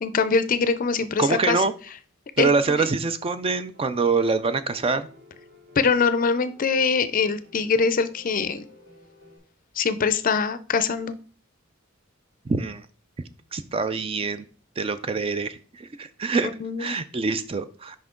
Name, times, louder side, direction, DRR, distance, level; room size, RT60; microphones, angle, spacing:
voice 1, 0.0-1.6 2.4-2.5 2.8-2.9 5.8-8.7 9.8-11.1 16.6-16.9, left 5 dB, 40° left, 13 dB, 0.5 m, -23 dB
voice 2, 1.2-1.7 2.4-5.1 12.5-12.9 13.5-14.4 14.8-16.5 16.8-18.0, right 4 dB, 25° right, 12 dB, 0.4 m, -25 dB
Piano, 3.7-9.4, left 1 dB, 55° right, 2.2 m, -52 dB
5.8 x 5.2 x 3.7 m, 0.39 s
head